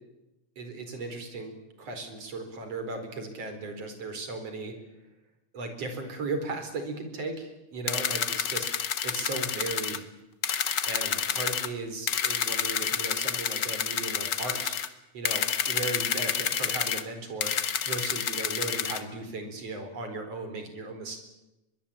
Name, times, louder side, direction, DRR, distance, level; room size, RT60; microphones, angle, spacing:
voice 1, 0.6-4.7 5.5-8.7 9.0-10.0 10.8-14.8 15.1-21.2, right 3 dB, 50° right, 7 dB, 5.4 m, -36 dB
sound 1, 7.9-10.0 10.4-11.7 12.1-14.9 15.2-17.0 17.4-19.0, left 8 dB, 50° left, 1.3 m, -29 dB
23.5 x 23.0 x 8.8 m, 0.96 s
omnidirectional pair, 3.6 m